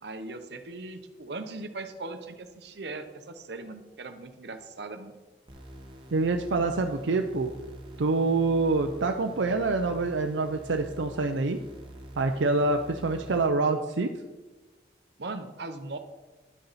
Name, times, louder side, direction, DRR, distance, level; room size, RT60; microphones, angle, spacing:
voice 1, 0.0-5.1 15.2-16.0, right 3 dB, 60° right, 8 dB, 0.9 m, -39 dB
sound 1, 5.5-13.5, equal, 25° right, 1.2 m, -46 dB
voice 2, 6.1-7.5 8.0-11.6 12.2-14.1, right 3 dB, 80° right, 5 dB, 0.5 m, -26 dB
11.0 x 6.7 x 4.1 m, 1.2 s
head